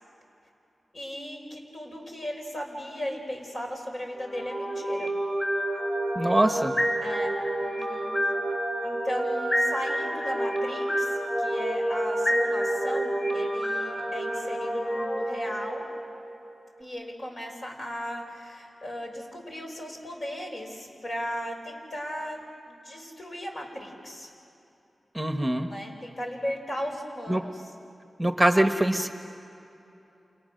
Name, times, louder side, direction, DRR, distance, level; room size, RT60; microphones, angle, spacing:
voice 1, 0.9-5.1 7.0-8.3 8.8-15.9 16.8-24.3 25.5-27.7, equal, 55° left, 1 dB, 5.7 m, -36 dB
sound 1, 4.2-16.3, right 1 dB, 35° left, 5.2 m, -28 dB
voice 2, 6.1-6.8 25.1-25.7 27.3-27.4 28.2-29.1, right 1 dB, 10° right, 6 dB, 1.2 m, -23 dB
29.5 x 28.5 x 6.6 m, 2.8 s
cardioid pair, 65°, 0 cm